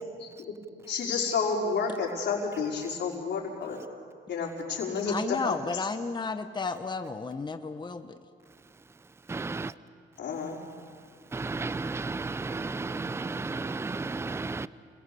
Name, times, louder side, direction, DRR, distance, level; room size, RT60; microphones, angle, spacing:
voice 1, 0.2-0.5 0.9-3.8 4.3-5.5 10.2-10.6, left 5 dB, 60° left, -2 dB, 5.2 m, -30 dB
voice 2, 5.1-8.2, left 4 dB, 20° left, 8 dB, 1.1 m, -33 dB
voice 3, 9.3-9.7 11.3-14.7, right 3 dB, 15° right, 16 dB, 0.6 m, -33 dB
28.0 x 21.5 x 7.0 m, 2.2 s
cardioid pair, 90°, 20 cm